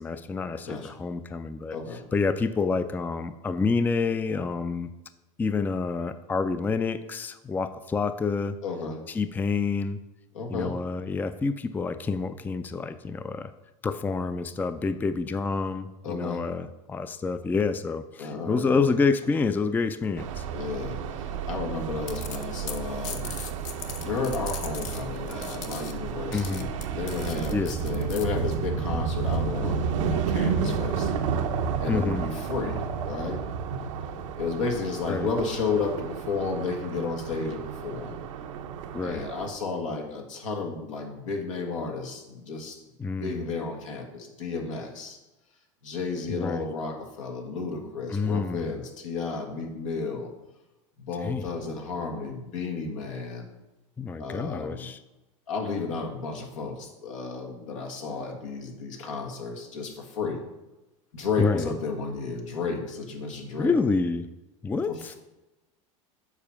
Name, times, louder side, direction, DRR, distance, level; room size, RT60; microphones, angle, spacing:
voice 1, 0.0-1.8 2.1-4.9 5.4-8.6 9.1-10.0 10.5-13.5 13.8-20.4 26.3-26.7 27.5-27.8 31.9-32.2 35.1-35.3 38.9-39.3 43.0-43.4 46.3-46.7 48.1-48.7 51.2-51.4 54.0-55.0 61.4-61.7 63.6-64.3 64.6-65.1, left 4 dB, 10° left, 11 dB, 0.3 m, -28 dB
voice 2, 1.7-2.0 8.6-9.0 10.3-10.7 16.0-16.4 18.2-19.0 20.5-23.3 24.0-31.1 31.8-33.4 34.4-38.2 39.0-42.8 43.2-45.2 45.8-50.3 51.0-53.5 54.2-54.9 55.5-60.4 61.1-63.7 64.9-65.2, left 4 dB, 85° left, 3 dB, 1.4 m, -32 dB
sound 1, 20.2-39.5, right 6 dB, 80° right, 0.7 m, -31 dB
sound 2, 22.0-28.2, left 8 dB, 50° left, 0.8 m, -41 dB
7.1 x 4.4 x 5.7 m, 1.0 s
hypercardioid pair, 100°, 16 cm